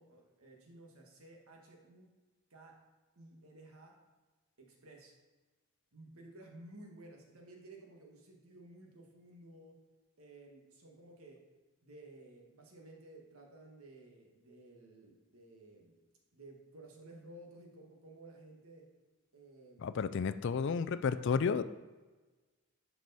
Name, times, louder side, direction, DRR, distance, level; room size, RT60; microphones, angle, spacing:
voice 1, 0.0-2.1 2.5-2.8 3.1-4.0 4.6-5.2 5.9-9.8 10.2-11.4 11.8-16.0 16.3-18.9 19.3-19.9, right 2 dB, 75° right, 1 dB, 1.5 m, -55 dB
voice 2, 19.8-21.6, left 5 dB, 55° left, 12 dB, 0.3 m, -32 dB
11.0 x 4.8 x 4.1 m, 1.3 s
head